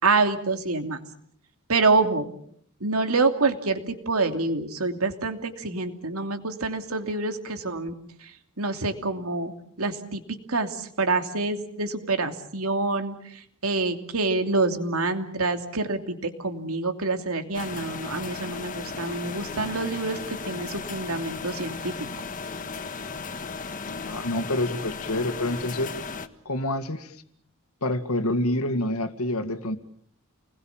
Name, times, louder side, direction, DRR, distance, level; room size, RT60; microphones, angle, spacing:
voice 1, 0.0-1.0 1.7-2.3 2.8-8.3 8.6-9.5 9.8-22.1, right 3 dB, 80° right, 6 dB, 2.9 m, -27 dB
sound 1, 17.5-26.3, left 4 dB, 40° left, 1.5 m, -35 dB
voice 2, 23.9-25.9 26.5-27.2 27.8-29.8, left 1 dB, 85° left, 9 dB, 2.1 m, -27 dB
29.5 x 21.0 x 7.3 m, 0.66 s
head